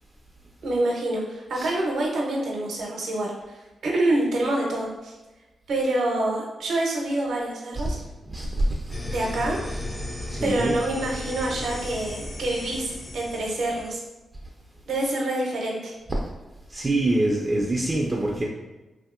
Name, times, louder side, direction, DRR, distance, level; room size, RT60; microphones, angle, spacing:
voice 1, 0.6-5.1 5.7-8.0 9.0-9.6 10.4-14.0 14.9-15.9, right 1 dB, 80° right, -1 dB, 0.7 m, -26 dB
voice 2, 8.3-9.1 10.3-10.7 16.7-18.5, right 1 dB, 30° right, -1 dB, 0.4 m, -25 dB
sound 1, 8.9-14.0, left 1 dB, 35° left, 0.5 m, -35 dB
2.8 x 2.7 x 2.4 m, 1.1 s
cardioid pair, 70°, 0 cm